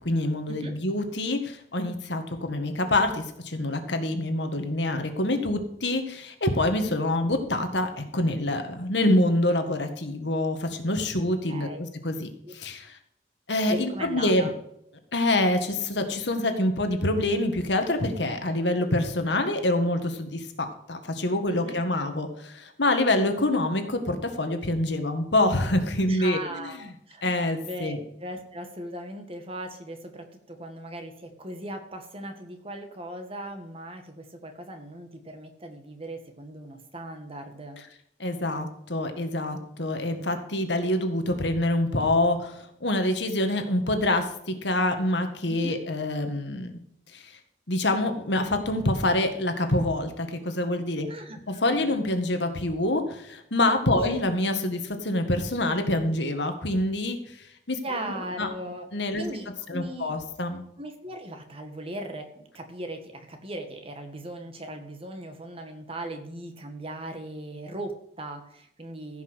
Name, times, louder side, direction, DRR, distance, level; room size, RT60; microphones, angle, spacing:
voice 1, 0.0-13.0 13.5-14.5 15.1-26.9 27.2-28.0 38.2-46.8 47.1-47.4 47.7-51.1 51.5-57.4 57.7-57.8 58.1-58.5 58.9-59.3 59.7-60.6, left 1 dB, 75° left, 6 dB, 1.9 m, -26 dB
voice 2, 11.5-11.9 12.4-12.6 13.7-14.5 21.5-21.8 26.1-37.8 45.5-45.8 51.1-51.9 53.9-54.2 57.8-58.9 59.2-60.1 60.8-69.2, right 1 dB, 30° right, 5 dB, 1.8 m, -38 dB
15.5 x 6.0 x 6.4 m, 0.74 s
head